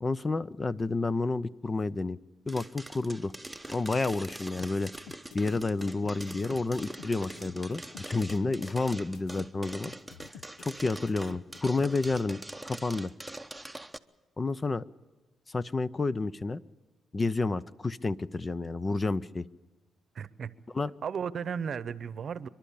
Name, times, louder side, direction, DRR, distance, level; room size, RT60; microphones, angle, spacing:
voice 1, 0.0-2.2 2.5-3.3 3.7-4.9 5.3-9.9 10.6-12.4 12.7-13.1 14.4-14.8 15.5-16.6 17.1-19.4 20.7-20.9, left 3 dB, 25° left, 16 dB, 0.6 m, -30 dB
sound 1, 2.5-14.0, right 1 dB, 5° right, 0.9 m, -43 dB
sound 2, 4.6-12.2, left 7 dB, 85° left, 0.8 m, -48 dB
voice 2, 20.1-20.6 21.0-22.5, right 7 dB, 50° right, 17 dB, 0.9 m, -35 dB
28.0 x 12.0 x 8.7 m, 1.2 s
cardioid pair, 90°, 0 cm